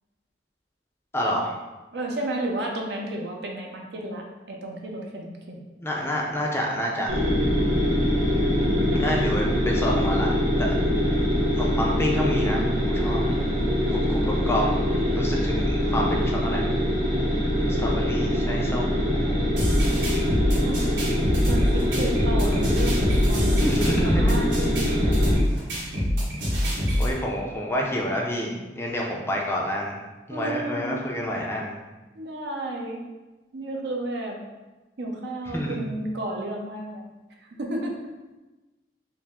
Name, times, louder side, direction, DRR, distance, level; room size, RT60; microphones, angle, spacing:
voice 1, 1.1-1.6 5.8-7.1 8.9-10.3 10.6-10.7 11.5-13.2 13.9-14.2 14.5-14.7 15.1-16.6 17.8-19.4 23.6-24.4 27.0-29.9 30.3-31.8 35.5-35.8, equal, 15° left, -2 dB, 0.4 m, -28 dB
voice 2, 1.9-5.6 8.6-9.0 20.6-20.9 21.4-25.0 27.1-27.2 30.3-31.1 32.1-33.1 33.5-34.4 35.0-37.1 37.4-38.0, right 1 dB, 70° right, 0 dB, 0.6 m, -32 dB
sound 1, 7.1-25.4, equal, 40° right, 1.1 m, -24 dB
sound 2, 19.6-27.1, equal, 85° right, 1.5 m, -25 dB
4.5 x 2.0 x 3.5 m, 1.1 s
head